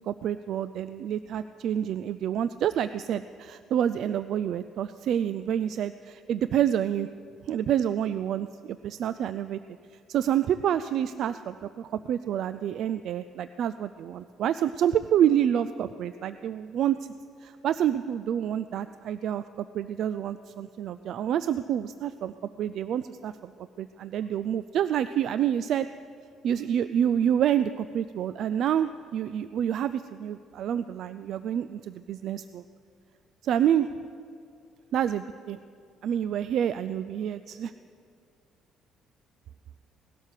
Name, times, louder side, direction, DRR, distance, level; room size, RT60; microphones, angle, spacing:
voice 1, 0.0-7.1 7.4-9.6 9.9-17.1 17.4-23.5 23.8-25.9 26.4-32.6 33.4-33.9 34.9-35.6 36.0-37.7, right 10 dB, 55° right, 13 dB, 0.3 m, -28 dB
18.0 x 12.0 x 6.6 m, 2.4 s
cardioid pair, 165°, 0 cm